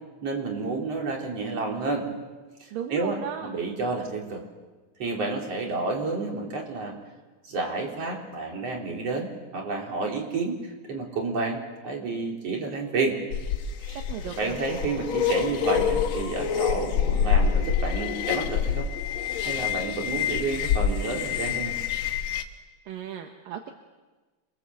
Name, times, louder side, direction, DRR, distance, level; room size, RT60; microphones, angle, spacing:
voice 1, 0.2-2.1 2.6-4.4 5.0-6.9 7.4-13.2 13.8-14.0 14.4-18.9 19.5-21.8, right 3 dB, 35° right, 0 dB, 4.5 m, -30 dB
voice 2, 2.7-3.5 14.1-14.6 22.9-23.7, right 9 dB, 65° right, 5 dB, 2.6 m, -35 dB
sound 1, 13.3-22.4, left 8 dB, 60° left, 1.8 m, -27 dB
27.0 x 24.5 x 7.8 m, 1.3 s
omnidirectional pair, 4.9 m